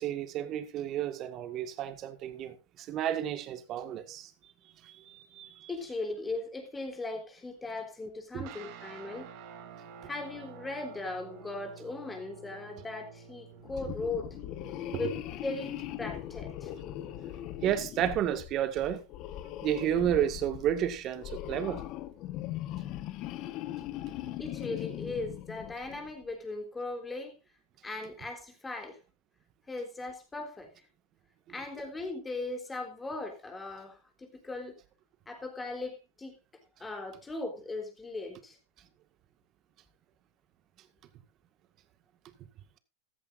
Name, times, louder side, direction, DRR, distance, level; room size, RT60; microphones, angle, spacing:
voice 1, 0.0-4.3 4.8-5.7 8.3-8.4 14.9-15.0 17.6-19.0 19.6-21.8, right 10 dB, 40° right, 1.9 m, -31 dB
voice 2, 5.7-9.3 10.1-14.3 14.9-15.2 15.4-16.7 24.4-27.4 27.8-29.0 29.7-30.7 31.5-34.8 35.3-36.4 36.8-38.6, left 3 dB, 15° left, 3.7 m, -38 dB
sound 1, 8.4-18.9, right 7 dB, 55° right, 3.3 m, -51 dB
sound 2, 13.6-26.1, left 13 dB, 45° left, 1.3 m, -40 dB
14.5 x 13.5 x 2.6 m
hypercardioid pair, 115°, 0 cm